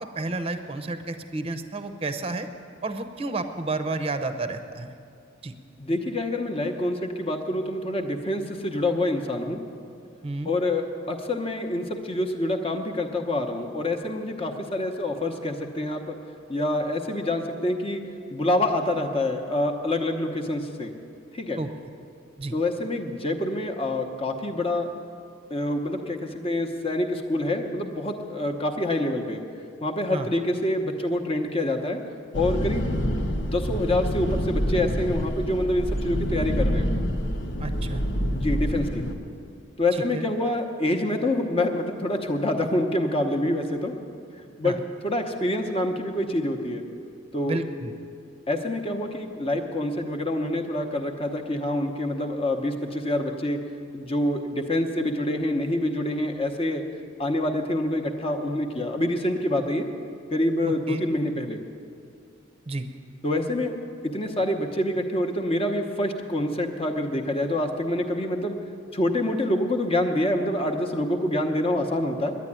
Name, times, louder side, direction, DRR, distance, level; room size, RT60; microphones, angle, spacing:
voice 1, 0.0-2.5 2.8-4.9 5.4-5.5 10.2-10.5 21.6-21.7 22.4-22.5 30.1-30.3 37.6-38.0 39.9-40.3 44.6-44.8 47.5-47.9 60.6-61.0 62.7-62.9, right 2 dB, 30° right, 9 dB, 0.7 m, -31 dB
voice 2, 5.8-9.6 10.4-16.2 16.5-18.0 18.3-20.9 21.3-21.6 22.5-24.9 25.5-29.4 29.8-32.0 32.3-32.9 33.4-36.9 38.3-39.0 39.8-43.9 44.6-44.8 45.0-46.8 47.3-47.6 48.5-53.6 53.9-56.8 57.2-59.9 60.3-61.6 63.2-63.8 64.0-68.6 68.9-72.3, left 1 dB, 30° left, 3 dB, 0.9 m, -26 dB
sound 1, 32.3-39.1, equal, 65° left, 1.2 m, -27 dB
10.5 x 9.6 x 9.9 m, 2.4 s
head